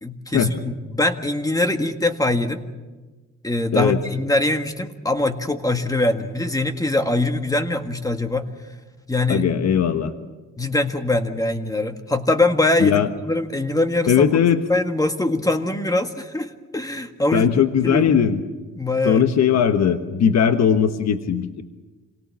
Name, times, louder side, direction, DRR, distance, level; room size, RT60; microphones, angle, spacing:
voice 1, 0.0-2.6 3.4-8.5 9.1-9.5 10.6-14.2 14.7-17.5 17.8-18.1 18.8-19.2, left 2 dB, 10° left, 7 dB, 1.8 m, -22 dB
voice 2, 9.3-10.1 12.8-13.1 14.1-14.6 17.3-18.4 19.0-21.6, left 8 dB, 60° left, 8 dB, 1.3 m, -18 dB
27.5 x 18.0 x 7.4 m, 1.2 s
cardioid pair, 90°, 30 cm